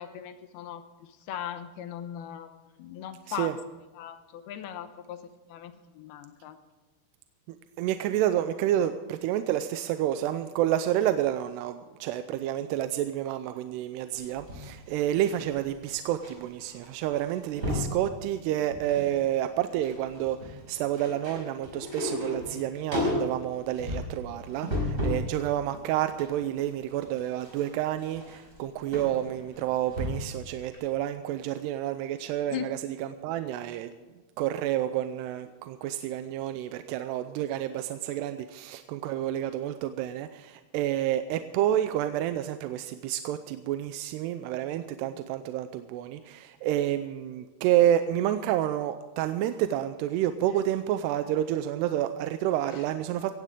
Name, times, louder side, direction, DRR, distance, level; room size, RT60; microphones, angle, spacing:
voice 1, 0.0-2.5 2.8-3.5 4.0-5.2 5.5-6.6 24.7-24.9 32.5-32.7, left 10 dB, 75° left, 9 dB, 2.8 m, -39 dB
voice 2, 7.5-33.9 34.4-53.4, right 12 dB, 85° right, 9 dB, 2.8 m, -29 dB
sound 1, 14.2-16.3 16.6-16.9 17.1-18.0 18.5-19.2 19.4-25.3 25.7-30.4 30.7-30.8, left 1 dB, 20° right, 5.3 m, -34 dB
17.5 x 15.5 x 3.7 m, 1.3 s
omnidirectional pair, 4.7 m